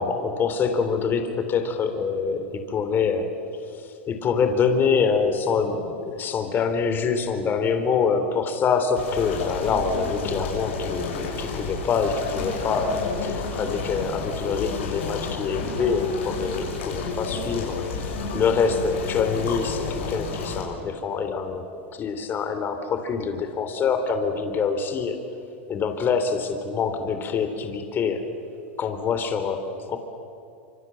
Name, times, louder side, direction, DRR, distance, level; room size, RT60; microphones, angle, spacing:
voice 1, 0.0-3.3 4.1-21.7 22.0-25.2 25.7-28.2 28.8-30.0, left 5 dB, 30° left, 7 dB, 3.4 m, -25 dB
sound 1, 8.9-20.6, left 4 dB, 80° left, 7.1 m, -31 dB
26.5 x 25.5 x 7.8 m, 2.7 s
hypercardioid pair, 110°, 6 cm